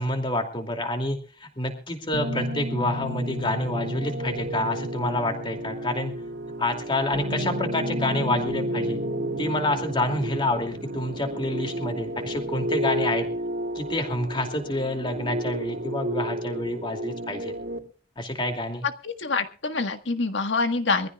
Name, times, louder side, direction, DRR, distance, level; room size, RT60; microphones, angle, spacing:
voice 1, 0.0-6.1 6.6-9.0 9.4-13.3 13.7-17.5 18.2-18.9, left 1 dB, 25° left, 4 dB, 2.6 m, -28 dB
sound 1, 2.1-17.8, equal, 90° right, 2.3 m, -31 dB
voice 2, 19.0-21.1, left 3 dB, 85° left, 8 dB, 1.5 m, -26 dB
23.5 x 15.0 x 2.4 m, 0.39 s
head